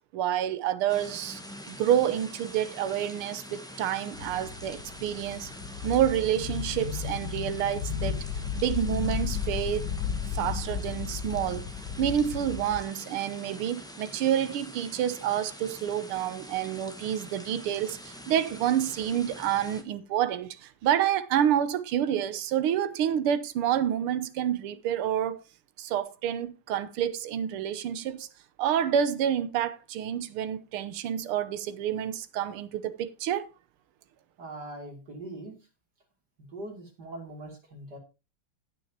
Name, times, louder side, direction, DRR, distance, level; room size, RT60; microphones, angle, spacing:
voice 1, 0.1-1.4 1.7-5.5 5.8-8.2 8.6-9.9 10.3-11.6 12.0-25.4 25.8-28.3 28.6-33.5, right 10 dB, 80° right, 1.7 m, -28 dB
sound 1, 0.9-19.8, equal, 5° left, 0.9 m, -45 dB
sound 2, 4.1-12.8, left 7 dB, 65° left, 1.2 m, -34 dB
voice 2, 34.4-35.6 36.4-38.0, right 1 dB, 50° right, 3.1 m, -41 dB
18.5 x 6.3 x 2.8 m
omnidirectional pair, 2.4 m